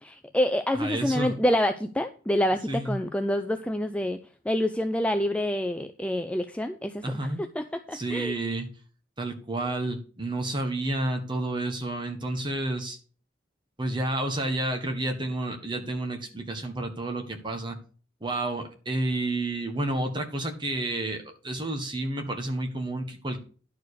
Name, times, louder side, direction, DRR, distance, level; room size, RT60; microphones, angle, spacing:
voice 1, 0.0-4.2 4.5-7.0 7.6-8.4, left 1 dB, 5° left, 7 dB, 0.4 m, -27 dB
voice 2, 0.7-1.3 2.7-3.0 7.0-7.4 7.9-8.7 9.2-13.0 13.8-17.8 18.2-23.4, right 2 dB, 20° right, 5 dB, 1.5 m, -30 dB
11.0 x 4.7 x 6.6 m, 0.39 s
head